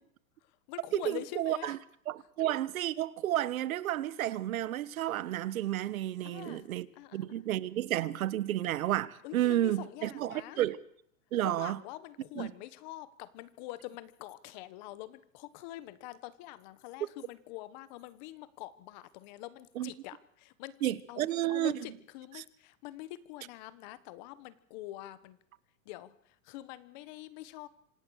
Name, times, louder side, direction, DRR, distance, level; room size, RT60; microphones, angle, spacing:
voice 1, 0.4-1.8 6.2-7.4 9.2-10.6 11.4-25.4 25.8-27.7, left 16 dB, 35° left, 1.3 m, -45 dB
voice 2, 0.9-1.8 2.1-6.9 7.1-10.8 11.3-11.8 12.4-12.5 19.8-19.9 20.8-21.7, right 13 dB, 85° right, 1.5 m, -31 dB
26.5 x 18.0 x 6.5 m
supercardioid pair, 175°, 40 cm